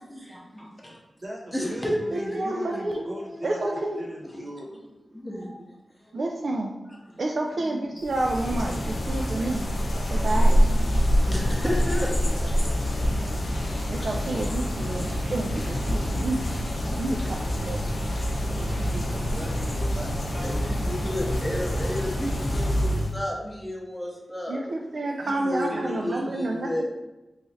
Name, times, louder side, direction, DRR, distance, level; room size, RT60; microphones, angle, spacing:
voice 1, 0.1-1.0 1.5-4.6 5.1-5.6 5.9-6.2 6.9-7.2 7.6-8.0 8.9-9.6 10.1-14.0 20.3-24.6 25.2-26.8, left 1 dB, 5° left, -3 dB, 0.7 m, -34 dB
voice 2, 1.2-3.6 4.0-4.8 9.9-10.7 18.4-20.8 25.7-26.3, equal, 35° right, -3 dB, 0.9 m, -39 dB
voice 3, 2.3-3.0 3.4-4.0 6.1-6.8 7.2-9.7 10.1-10.6 13.9-16.4 16.8-17.8 24.5-26.8, right 2 dB, 55° right, 1 dB, 0.3 m, -29 dB
sound 1, 8.0-23.1, equal, 60° left, 0.6 m, -26 dB
3.1 x 2.4 x 4.0 m, 1.0 s
wide cardioid pair, 135°, 0 cm